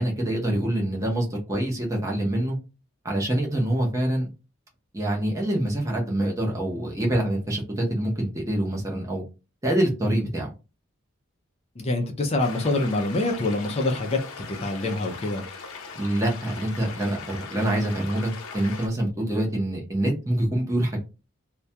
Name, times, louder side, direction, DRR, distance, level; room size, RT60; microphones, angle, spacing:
voice 1, 0.0-2.6 3.0-4.3 4.9-9.2 9.6-10.5 15.9-21.0, right 1 dB, 15° right, -2 dB, 0.6 m, -25 dB
voice 2, 11.8-14.2 14.5-15.4, left 2 dB, 30° left, 2 dB, 0.4 m, -25 dB
sound 1, 12.4-18.9, left 5 dB, 80° left, 0.5 m, -40 dB
2.2 x 2.1 x 2.7 m, 0.29 s
head